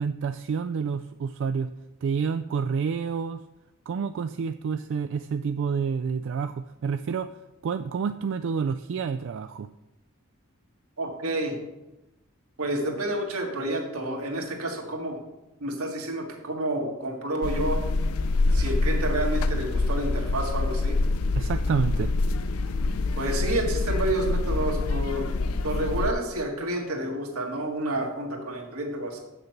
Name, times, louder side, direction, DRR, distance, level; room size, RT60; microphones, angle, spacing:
voice 1, 0.0-1.7 2.0-3.4 3.9-7.3 7.6-9.7 21.4-22.1, right 6 dB, 60° right, 9 dB, 0.3 m, -28 dB
voice 2, 11.0-11.6 12.6-15.2 15.6-17.8 18.5-21.0 23.2-25.3 25.6-29.2, right 1 dB, 85° right, 1 dB, 1.9 m, -29 dB
sound 1, 17.4-26.1, left 3 dB, 80° left, 0.6 m, -26 dB
7.8 x 6.7 x 5.8 m, 0.97 s
head